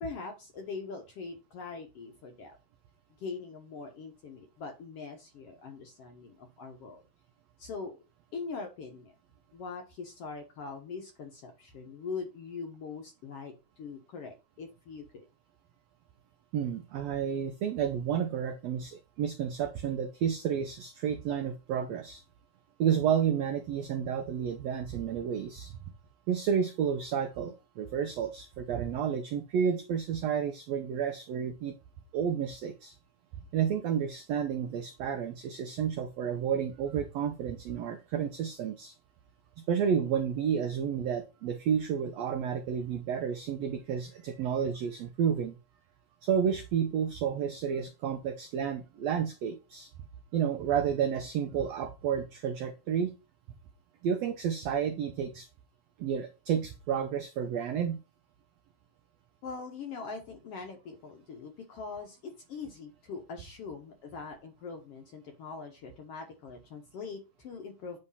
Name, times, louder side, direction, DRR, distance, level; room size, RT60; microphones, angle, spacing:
voice 1, 0.0-2.6 3.2-7.0 7.6-8.0 8.3-9.1 9.5-15.3 59.4-68.0, left 4 dB, 65° left, 3 dB, 1.6 m, -42 dB
voice 2, 16.5-22.2 22.8-25.8 26.3-31.7 32.1-32.9 33.5-38.9 39.7-45.6 46.2-49.9 50.3-53.1 54.0-55.5 56.0-58.0, right 8 dB, 80° right, 7 dB, 1.5 m, -31 dB
8.7 x 3.2 x 5.5 m, 0.28 s
omnidirectional pair, 3.8 m